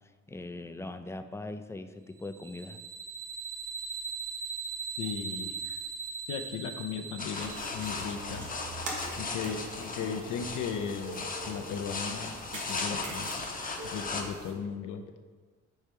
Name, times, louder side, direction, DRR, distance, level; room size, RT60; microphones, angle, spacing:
voice 1, 0.3-2.8, left 2 dB, 10° left, 9 dB, 0.3 m, -40 dB
sound 1, 2.2-8.2, right 6 dB, 25° right, 0.8 m, -39 dB
voice 2, 5.0-5.8 6.3-8.5 9.2-13.4 13.8-15.0, left 7 dB, 80° left, 5 dB, 0.6 m, -37 dB
sound 2, 7.2-14.2, left 3 dB, 30° left, 0.8 m, -37 dB
sound 3, 7.3-14.5, right 1 dB, 90° right, 1.3 m, -42 dB
4.6 x 4.4 x 5.2 m, 1.4 s
cardioid pair, 90°, 30 cm